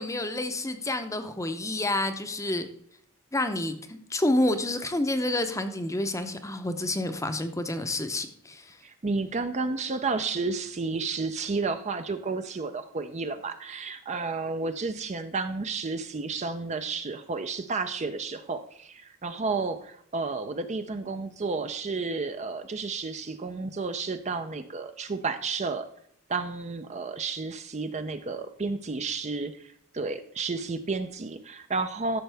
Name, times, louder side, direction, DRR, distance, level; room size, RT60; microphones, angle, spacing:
voice 1, 0.0-2.7 3.3-8.8, left 1 dB, 15° left, 8 dB, 0.7 m, -29 dB
voice 2, 8.8-25.9 26.3-32.2, right 4 dB, 35° right, 9 dB, 0.5 m, -31 dB
13.5 x 6.6 x 3.4 m, 0.68 s
head